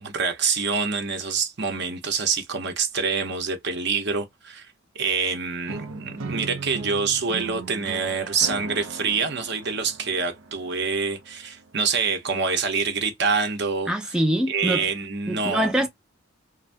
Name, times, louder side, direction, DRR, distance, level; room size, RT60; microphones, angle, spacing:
voice 1, 0.0-4.7 4.9-13.9 14.5-15.7, right 5 dB, 60° right, 0.9 m, -26 dB
sound 1, 5.7-11.6, right 4 dB, 90° right, 0.5 m, -38 dB
voice 2, 13.9-14.9 15.3-15.9, right 1 dB, 5° right, 0.4 m, -24 dB
2.6 x 2.2 x 3.3 m
head